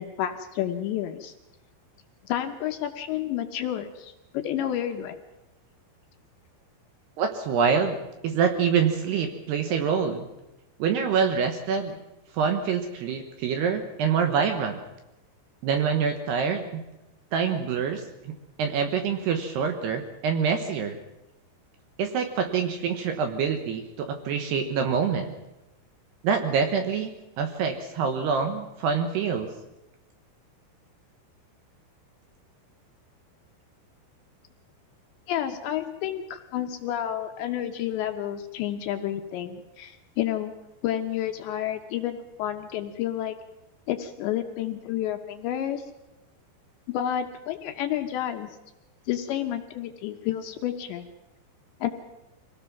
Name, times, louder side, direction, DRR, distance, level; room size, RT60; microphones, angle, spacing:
voice 1, 0.0-1.3 2.2-5.2 35.3-40.5 40.8-43.3 43.9-45.9 46.9-48.5 49.1-51.1 51.8-51.9, left 11 dB, 75° left, 6 dB, 2.9 m, -30 dB
voice 2, 7.2-8.0 8.2-10.3 10.8-12.0 12.3-14.8 15.6-16.8 17.3-18.3 18.6-21.0 22.0-25.3 26.2-27.1 27.4-29.5, right 6 dB, 70° right, 6 dB, 2.8 m, -26 dB
24.5 x 17.5 x 6.0 m, 0.97 s
omnidirectional pair, 5.8 m